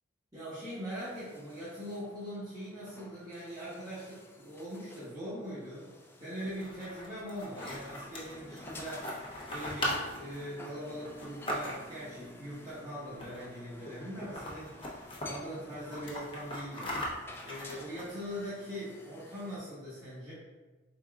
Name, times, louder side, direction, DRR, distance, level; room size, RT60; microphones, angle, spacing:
voice 1, 0.3-5.9 6.2-9.1 9.5-16.9 17.4-20.3, equal, 20° right, -12 dB, 1.2 m, -41 dB
doing dishes, 0.9-19.6, left 1 dB, 15° left, 0.3 m, -53 dB
sound 1, 6.4-12.1 13.1-13.6 13.9-14.0 14.2-15.3 15.7-18.4, equal, 30° left, 0.7 m, -39 dB
4.9 x 3.6 x 2.4 m, 1.2 s
head